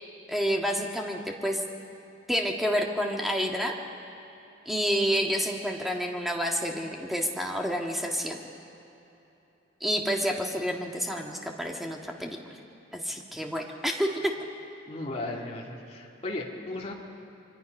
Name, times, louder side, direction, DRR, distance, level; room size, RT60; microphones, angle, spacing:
voice 1, 0.3-1.6 2.3-3.8 4.7-8.4 9.8-12.4 12.9-14.3, equal, ahead, 0 dB, 1.8 m, -29 dB
voice 2, 14.9-16.9, left 2 dB, 35° left, -2 dB, 2.5 m, -36 dB
25.5 x 24.0 x 5.5 m, 3.0 s
head